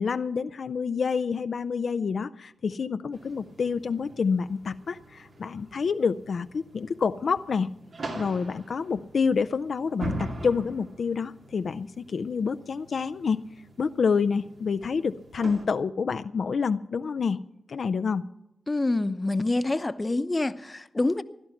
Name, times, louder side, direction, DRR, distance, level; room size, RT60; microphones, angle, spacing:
voice 1, 0.0-7.7 8.1-13.4 13.8-17.4 17.7-18.2, left 5 dB, 75° left, 0.5 m, -28 dB
sound 1, 3.1-15.7, right 1 dB, 75° right, 2.7 m, -42 dB
voice 2, 18.7-21.2, left 2 dB, 30° left, 0.9 m, -26 dB
16.5 x 11.5 x 5.9 m
cardioid pair, 50°, 0 cm